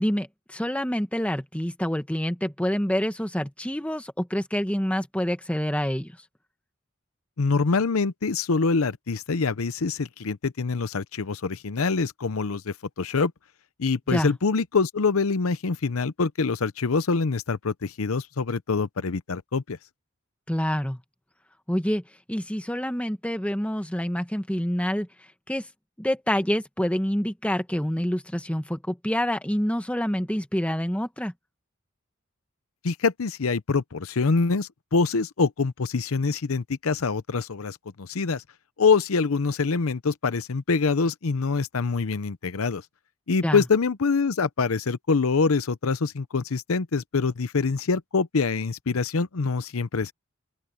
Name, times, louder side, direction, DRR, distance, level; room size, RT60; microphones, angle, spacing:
voice 1, 0.0-6.1 14.1-14.3 20.5-21.0 21.7-22.0 22.3-25.1 25.5-25.7 26.0-31.3 43.4-43.6, equal, 5° left, 1.4 m, -27 dB
voice 2, 7.4-13.3 13.8-19.8 32.8-38.4 38.8-42.8 43.3-50.1, left 4 dB, 80° left, 0.7 m, -25 dB
open air
head